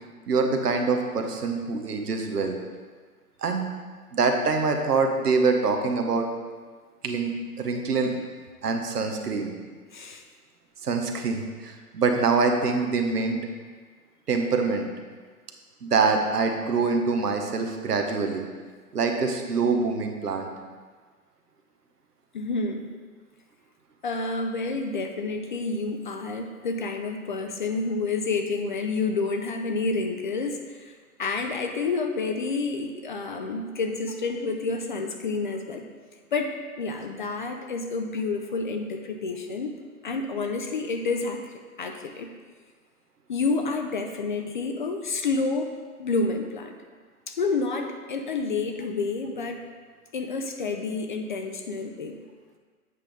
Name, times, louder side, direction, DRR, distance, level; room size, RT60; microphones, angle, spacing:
voice 1, 0.3-2.6 3.4-3.7 4.1-6.3 7.0-8.1 8.6-9.5 10.8-13.4 14.3-14.9 15.8-18.4 18.9-20.5, right 4 dB, 85° right, 4 dB, 1.1 m, -25 dB
voice 2, 9.9-10.2 22.3-22.9 24.0-35.9 36.3-39.7 40.0-41.4 41.8-42.3 43.3-45.7 46.0-46.8 47.3-49.7 50.1-52.2, left 3 dB, 35° left, 5 dB, 0.4 m, -29 dB
8.3 x 5.2 x 3.5 m, 1.5 s
hypercardioid pair, 130°, 46 cm